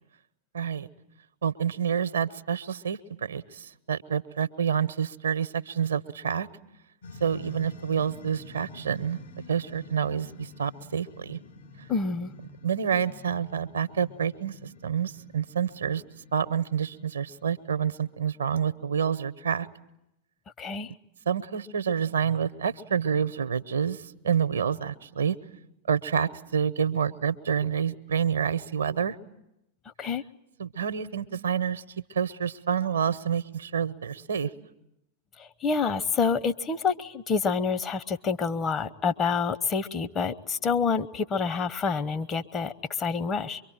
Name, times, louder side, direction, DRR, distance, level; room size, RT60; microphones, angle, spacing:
voice 1, 0.5-0.9 1.4-6.5 7.2-9.2 9.5-11.4 12.6-14.5 14.8-16.0 16.3-19.7 21.3-25.4 25.9-29.2 30.6-31.8 32.1-34.5, right 8 dB, 70° right, 14 dB, 0.9 m, -28 dB
sound 1, 7.0-18.4, left 2 dB, 70° left, 4.9 m, -48 dB
voice 2, 11.9-12.3 20.6-20.9 30.0-30.2 35.4-43.6, left 5 dB, 25° left, 9 dB, 1.0 m, -27 dB
24.0 x 24.0 x 9.0 m, 0.85 s
figure-of-eight pair, 90°, 0 cm